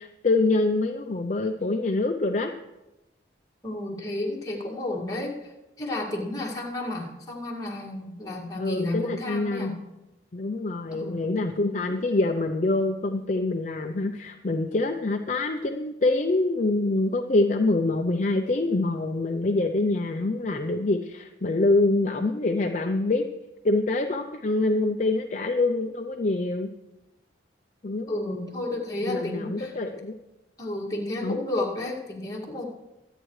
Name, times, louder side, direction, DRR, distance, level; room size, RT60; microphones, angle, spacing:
voice 1, 0.0-2.5 8.6-9.8 10.3-23.2 23.6-26.7 27.8-28.1 29.0-30.2 31.2-31.4, left 2 dB, 40° left, 5 dB, 0.5 m, -25 dB
voice 2, 3.6-9.7 10.9-11.4 28.1-29.7 30.6-32.6, left 2 dB, 20° left, -3 dB, 2.1 m, -32 dB
24.5 x 8.9 x 3.2 m, 1.0 s
head